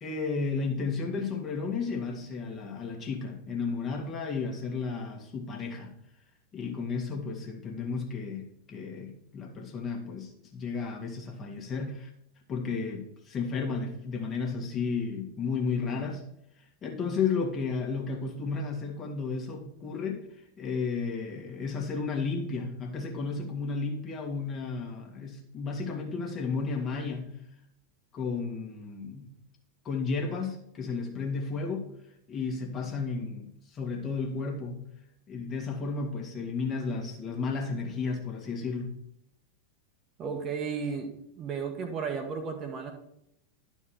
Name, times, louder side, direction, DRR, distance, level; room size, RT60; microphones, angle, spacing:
voice 1, 0.0-5.9 6.5-12.1 12.5-16.2 16.8-20.3 20.6-27.3 28.1-29.3 29.9-31.9 32.3-34.8 35.3-38.9, left 4 dB, 30° left, 1 dB, 1.7 m, -33 dB
voice 2, 40.2-42.9, right 5 dB, 30° right, 4 dB, 1.2 m, -34 dB
11.0 x 4.5 x 4.4 m, 0.77 s
figure-of-eight pair, 90°, 0 cm